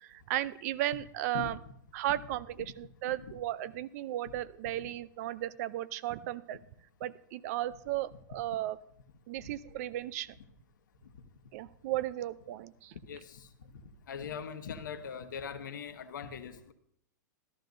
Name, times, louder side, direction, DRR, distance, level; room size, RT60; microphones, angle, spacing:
voice 1, 0.0-1.6 1.9-6.6 7.0-8.8 9.3-10.3 11.5-12.9, right 14 dB, 55° right, 18 dB, 0.5 m, -35 dB
voice 2, 13.1-13.5 14.1-16.7, left 7 dB, 75° left, 10 dB, 1.0 m, -41 dB
13.5 x 12.0 x 2.6 m, 0.72 s
hypercardioid pair, 110°, 10 cm